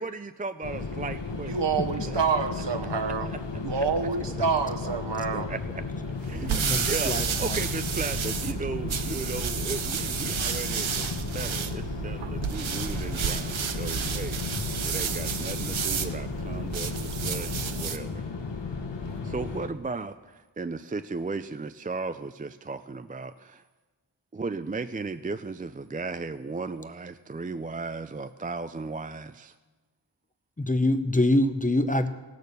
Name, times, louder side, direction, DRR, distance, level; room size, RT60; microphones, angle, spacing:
voice 1, 0.0-1.6 2.1-2.4 3.0-3.4 3.7-3.8 5.5-5.8 6.3-7.1 7.4-14.4 14.8-18.2 19.2-23.6 24.3-29.5, right 3 dB, 20° right, 10 dB, 0.3 m, -36 dB
sound 1, 0.6-19.7, left 4 dB, 70° left, 1.4 m, -34 dB
voice 2, 1.4-3.3 3.6-5.5, right 5 dB, 65° right, 6 dB, 1.1 m, -27 dB
sound 2, 6.2-18.1, right 7 dB, 85° right, 0.8 m, -31 dB
voice 3, 6.5-7.6 30.6-32.1, left 1 dB, 20° left, 9 dB, 0.7 m, -25 dB
17.0 x 6.7 x 6.7 m, 1.3 s
wide cardioid pair, 80°, 45 cm